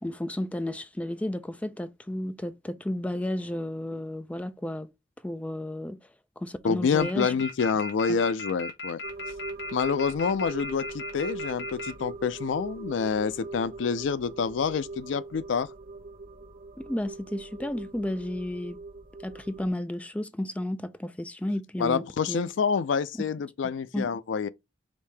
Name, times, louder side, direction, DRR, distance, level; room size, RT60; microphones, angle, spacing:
voice 1, 0.0-4.9 5.2-6.1 6.4-7.3 16.8-18.8 19.2-22.4 23.9-24.1, left 1 dB, 5° left, 0.3 m, -32 dB
voice 2, 6.6-9.0 9.7-15.7 21.8-24.5, left 5 dB, 90° left, 0.4 m, -27 dB
sound 1, 7.0-11.9, left 2 dB, 65° left, 1.3 m, -36 dB
sound 2, 9.0-19.7, right 3 dB, 50° right, 0.8 m, -41 dB
5.1 x 2.7 x 3.3 m
head